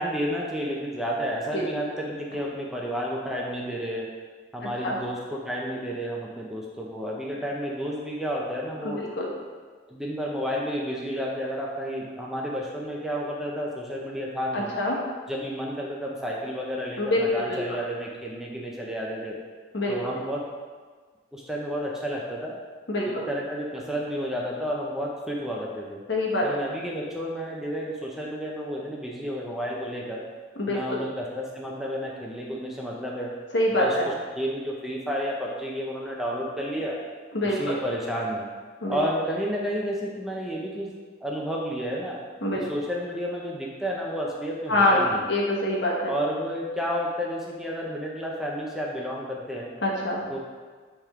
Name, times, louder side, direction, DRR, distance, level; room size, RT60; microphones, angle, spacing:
voice 1, 0.0-4.1 4.5-9.0 9.9-14.7 15.3-19.4 19.9-20.4 21.3-22.6 23.0-26.0 26.4-30.3 30.7-33.3 33.8-37.0 37.4-38.5 38.9-40.9 41.2-42.2 42.5-45.3 46.1-49.7 50.3-50.4, equal, 5° right, -3 dB, 0.6 m, -31 dB
voice 2, 8.8-9.3 14.5-15.0 17.0-17.6 19.7-19.9 22.9-23.3 26.1-26.4 30.6-31.0 33.5-34.1 37.3-37.7 38.8-39.0 42.4-42.6 44.7-45.0 45.3-46.1 49.8-50.2, left 1 dB, 80° left, -3 dB, 1.3 m, -25 dB
8.6 x 3.5 x 3.6 m, 1.5 s
head